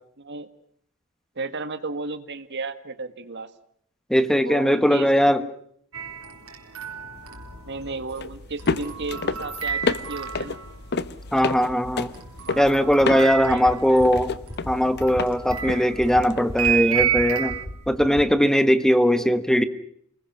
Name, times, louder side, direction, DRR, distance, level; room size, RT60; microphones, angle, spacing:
voice 1, 0.2-0.5 1.3-3.5 4.4-5.1 5.4-5.5 7.6-10.6 12.4-12.7 13.1-14.1, right 3 dB, 55° right, 11 dB, 1.7 m, -34 dB
voice 2, 4.1-5.4 11.3-12.1 12.6-14.3 14.7-17.5 17.9-19.6, equal, ahead, 12 dB, 1.2 m, -20 dB
sound 1, 5.9-10.9 12.1-17.6, right 9 dB, 70° right, 4.0 m, -31 dB
sound 2, 7.2-18.1, left 4 dB, 50° left, 0.9 m, -32 dB
sound 3, 13.5-13.7 14.0-14.2 14.5-14.7 15.0-15.2 15.5-15.7 16.0-16.2 16.5-16.7 17.0-17.2 17.5-17.7 18.0-18.2, equal, 35° left, 5.1 m, -34 dB
29.0 x 20.5 x 6.1 m, 0.66 s
head